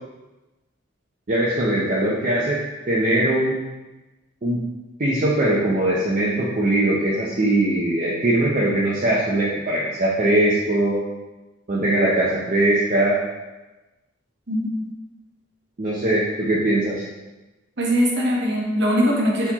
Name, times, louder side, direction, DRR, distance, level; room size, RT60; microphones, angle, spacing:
voice 1, 1.3-2.6 2.9-3.5 4.4-4.6 5.0-11.0 11.7-13.2 15.8-17.0, right 1 dB, 35° right, -6 dB, 0.5 m, -21 dB
voice 2, 14.5-14.9 17.8-19.5, equal, 55° right, -2 dB, 0.9 m, -21 dB
4.1 x 4.1 x 2.9 m, 1.1 s
head